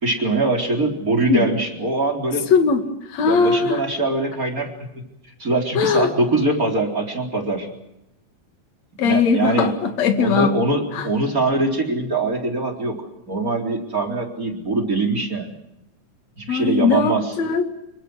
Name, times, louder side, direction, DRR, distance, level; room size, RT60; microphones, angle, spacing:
voice 1, 0.0-2.5 3.2-4.9 5.4-7.7 9.0-9.7 10.2-15.5 16.4-17.3, right 2 dB, 25° right, 1 dB, 4.3 m, -22 dB
voice 2, 2.5-2.8 3.1-3.8 5.8-6.1 9.0-10.5 10.9-11.1 16.5-17.7, left 5 dB, 60° left, 6 dB, 3.3 m, -19 dB
28.0 x 23.5 x 6.4 m, 0.87 s
omnidirectional pair, 3.6 m